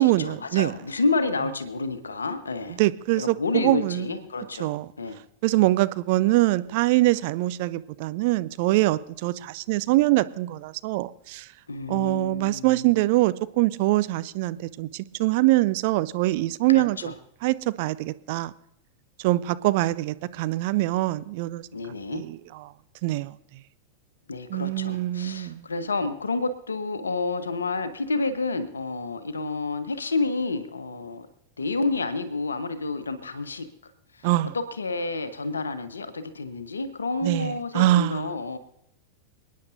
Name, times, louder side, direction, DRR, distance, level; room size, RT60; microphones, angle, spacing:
voice 1, 0.0-2.8 3.2-4.7 5.0-5.2 11.7-12.9 16.7-17.1 21.7-22.2 24.3-31.3 31.6-34.3 34.5-38.6, left 3 dB, 75° left, 1.1 m, -29 dB
voice 2, 2.8-4.1 4.6-4.9 5.4-11.5 11.9-17.1 17.4-18.5 19.2-21.7 22.1-22.4 23.0-23.3 24.5-25.6 34.2-34.5 37.2-38.3, right 18 dB, 50° right, 0.4 m, -23 dB
28.0 x 9.5 x 2.6 m
figure-of-eight pair, 90°, 0 cm